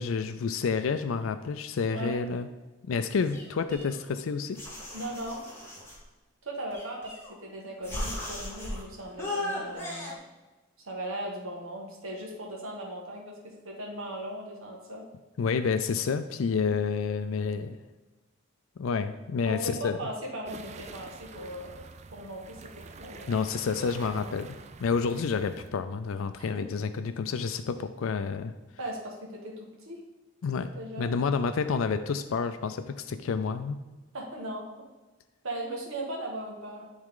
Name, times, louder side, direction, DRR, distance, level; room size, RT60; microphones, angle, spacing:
voice 1, 0.0-2.5 2.9-4.6 15.4-17.8 18.8-20.0 23.3-24.5 24.8-28.5 30.4-33.8, left 5 dB, 80° left, 10 dB, 0.4 m, -29 dB
voice 2, 1.9-2.2 4.9-5.4 6.4-10.1 10.8-15.0 19.4-23.5 24.1-24.3 26.3-26.6 28.8-30.0 30.7-31.2 34.1-34.7 35.4-36.9, right 1 dB, 85° right, -1 dB, 1.7 m, -38 dB
sound 1, 3.3-4.2 4.6-6.0 6.7-7.4 7.8-8.8 9.2-10.1, left 1 dB, 10° left, 1.5 m, -37 dB
sound 2, 20.4-25.7, right 4 dB, 35° right, 0.3 m, -46 dB
10.5 x 3.6 x 3.7 m, 1.2 s
head